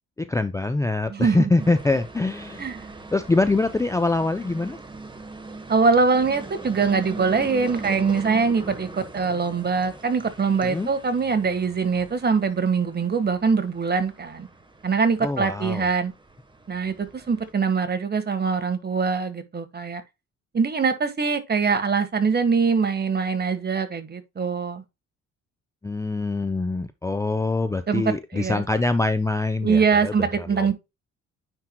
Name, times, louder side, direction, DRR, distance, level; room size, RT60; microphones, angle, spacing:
voice 1, 0.2-2.7 3.1-4.8 10.6-10.9 15.2-15.9 25.8-30.7, left 2 dB, 10° left, 0.5 m, -24 dB
voice 2, 1.1-1.5 2.6-2.9 5.7-14.5 14.8-16.1 16.7-20.0 20.5-24.8 27.9-28.6 29.6-30.7, right 5 dB, 35° right, 1.5 m, -23 dB
sound 1, 1.6-17.5, right 3 dB, 15° right, 1.2 m, -40 dB
9.6 x 4.5 x 2.2 m
cardioid pair, 90°, 30 cm